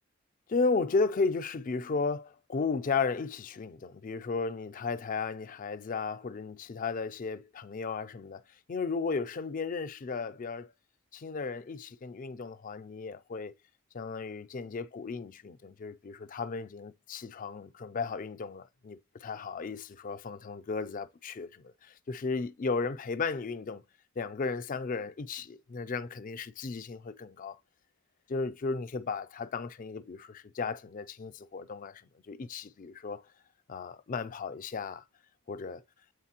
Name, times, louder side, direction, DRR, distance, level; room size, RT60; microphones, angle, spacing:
voice 1, 0.5-8.4 8.7-10.7 11.1-13.5 13.9-23.8 24.2-27.6 28.3-33.3 33.7-35.0 35.5-35.8, left 4 dB, 35° left, 0.4 m, -34 dB
8.1 x 4.0 x 2.8 m
head